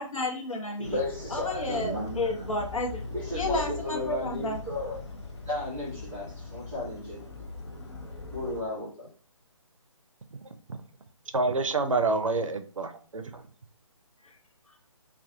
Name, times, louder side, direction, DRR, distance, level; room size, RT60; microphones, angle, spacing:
voice 1, 0.0-1.0 1.3-3.1 3.3-4.6 14.2-14.3, left 2 dB, 75° left, 0.9 m, -31 dB
sound 1, 0.8-8.6, left 4 dB, 55° left, 0.6 m, -40 dB
voice 2, 0.8-2.5 3.1-5.0 5.4-7.3 8.3-9.1, left 1 dB, 5° right, 0.3 m, -34 dB
voice 3, 11.3-13.4, right 3 dB, 70° right, 0.4 m, -27 dB
2.3 x 2.3 x 2.7 m
figure-of-eight pair, 145°, 17 cm